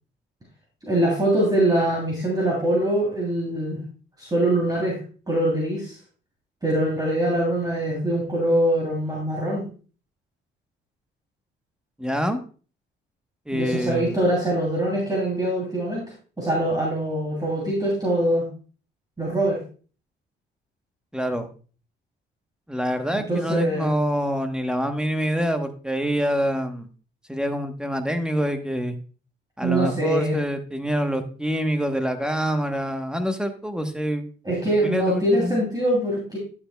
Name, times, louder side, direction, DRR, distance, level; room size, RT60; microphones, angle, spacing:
voice 1, 0.8-3.8 4.2-5.0 5.3-5.9 6.6-9.6 13.5-16.0 16.4-18.5 19.2-19.6 23.1-23.9 29.6-30.4 34.4-36.4, right 1 dB, 20° right, -4 dB, 3.0 m, -23 dB
voice 2, 12.0-12.4 13.5-14.2 21.1-21.5 22.7-26.9 27.3-29.0 29.6-34.3 34.8-35.6, equal, 5° right, 7 dB, 1.0 m, -26 dB
11.0 x 7.0 x 2.2 m, 0.38 s
cardioid pair, 90°, 20 cm